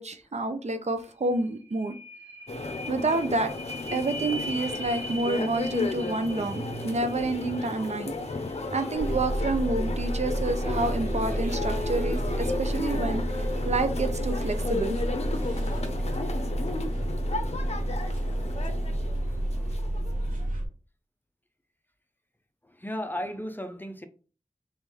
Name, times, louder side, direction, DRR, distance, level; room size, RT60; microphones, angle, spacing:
voice 1, 0.0-2.0 2.9-3.5 3.9-8.1 8.7-15.0, right 2 dB, 60° right, 0.5 m, -29 dB
sound 1, 1.0-1.1 1.4-17.3 17.8-17.9, equal, 30° right, 1.1 m, -41 dB
sound 2, 2.5-20.4, left 3 dB, 55° left, 0.6 m, -34 dB
sound 3, 8.9-20.7, right 1 dB, 85° right, 0.9 m, -30 dB
voice 2, 16.1-16.8 19.2-19.8 22.6-24.1, equal, 15° left, 0.6 m, -38 dB
3.4 x 3.1 x 3.5 m
wide cardioid pair, 55°, 13 cm